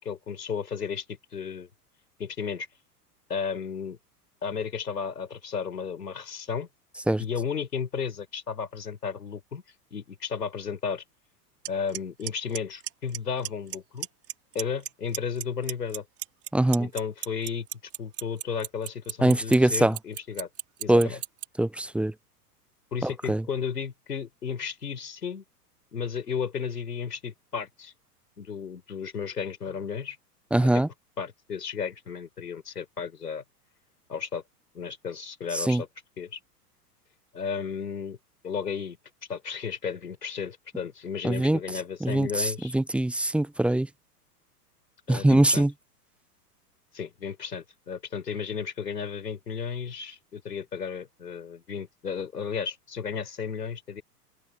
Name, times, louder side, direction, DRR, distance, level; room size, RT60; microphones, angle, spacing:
voice 1, 0.0-1.7 2.2-2.7 3.3-4.0 4.4-6.7 7.2-9.6 9.9-11.0 11.7-14.1 14.5-16.0 16.8-17.7 18.0-20.5 20.8-21.2 22.9-25.4 25.9-27.9 28.4-30.2 30.6-30.8 31.2-33.4 34.1-34.4 34.7-35.9 36.2-36.4 37.3-38.2 38.4-39.0 39.3-42.7 45.1-45.7 46.9-54.0, left 6 dB, 80° left, 5.5 m, -33 dB
Clock, 11.6-11.7 11.9-12.3 12.5-13.2 13.4-13.8 14.0-14.9 15.1-21.4, right 13 dB, 30° right, 4.5 m, -32 dB
voice 2, 16.5-16.9 19.2-20.0 20.9-21.1 21.6-22.1 23.0-23.4 30.5-30.9 35.5-35.8 41.2-41.6 42.0-43.9 45.1-45.7, right 1 dB, ahead, 0.7 m, -22 dB
figure-of-eight pair, 100°, 47 cm